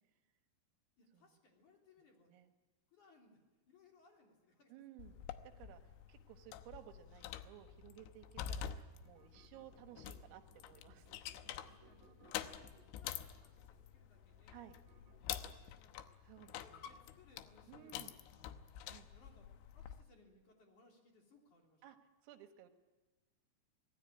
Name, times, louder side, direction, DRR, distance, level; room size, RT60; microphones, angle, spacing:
voice 1, 1.0-2.3 2.9-5.1 7.9-8.1 11.3-14.6 14.9-16.2 16.6-18.5 19.1-21.8, left 3 dB, 40° left, 1 dB, 4.4 m, -68 dB
voice 2, 4.7-5.2 5.6-5.8 6.1-11.1 14.5-14.8 16.2-16.8 17.7-18.1 18.8-19.1 21.8-22.0 22.2-22.7, right 12 dB, 80° right, 7 dB, 4.1 m, -57 dB
sound 1, 5.0-20.0, left 10 dB, 75° left, 3.2 m, -48 dB
sound 2, 9.0-15.8, right 7 dB, 60° right, 4.1 m, -67 dB
25.5 x 19.0 x 10.0 m, 1.2 s
omnidirectional pair, 6.0 m